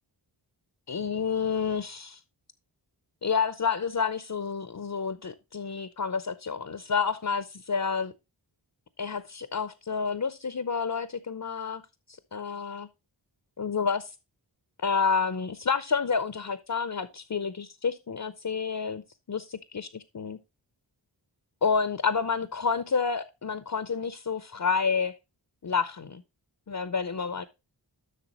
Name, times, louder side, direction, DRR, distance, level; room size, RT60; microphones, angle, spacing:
voice 1, 0.9-2.2 3.2-8.1 9.0-11.8 12.1-12.9 13.6-14.1 14.8-19.0 19.3-20.4 21.6-25.1 25.6-26.2 26.7-27.4, left 5 dB, 45° left, 0.7 m, -29 dB
11.0 x 6.6 x 3.0 m
wide cardioid pair, 55°, 46 cm